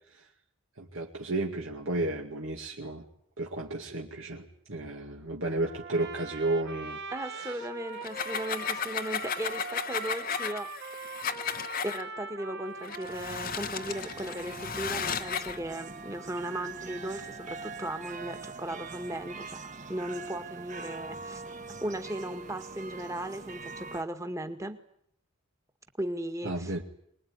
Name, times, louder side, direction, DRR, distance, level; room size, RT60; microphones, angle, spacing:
voice 1, 0.8-3.1 3.4-7.0 7.3-7.6 26.4-26.8, right 2 dB, 70° right, 0 dB, 2.1 m, -33 dB
Trumpet, 5.6-14.0, right 4 dB, 50° right, 1.8 m, -42 dB
voice 2, 7.1-10.7 11.8-19.6 19.9-21.4 21.8-24.8 26.0-26.8, right 1 dB, 15° right, 7 dB, 1.8 m, -37 dB
sound 1, 7.9-12.0 12.8-15.6, left 7 dB, 40° left, 1.0 m, -34 dB
sound 2, 13.9-24.0, right 4 dB, 35° right, 1.3 m, -43 dB
25.0 x 21.0 x 9.6 m, 0.71 s
head